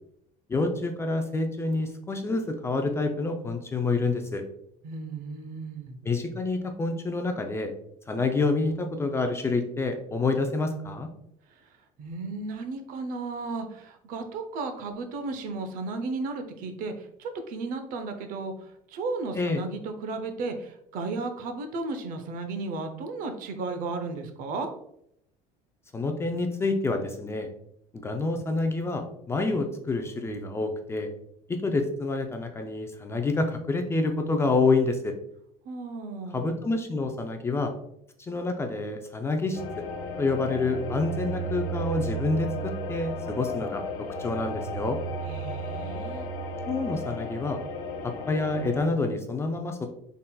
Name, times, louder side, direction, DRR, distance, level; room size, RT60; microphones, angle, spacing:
voice 1, 0.5-4.4 6.0-7.7 8.1-11.1 19.3-19.6 25.9-27.5 28.0-31.1 31.5-35.1 36.3-37.7 38.2-39.8 40.2-45.0 46.7-47.6 48.0-49.9, left 3 dB, 15° left, 5 dB, 0.4 m, -28 dB
voice 2, 4.8-6.0 12.0-24.7 35.7-36.5 45.3-46.3, right 3 dB, 60° right, 7 dB, 0.6 m, -34 dB
sound 1, 39.5-48.9, right 1 dB, 75° left, 0.7 m, -34 dB
3.9 x 3.7 x 2.2 m, 0.74 s
cardioid pair, 135°, 16 cm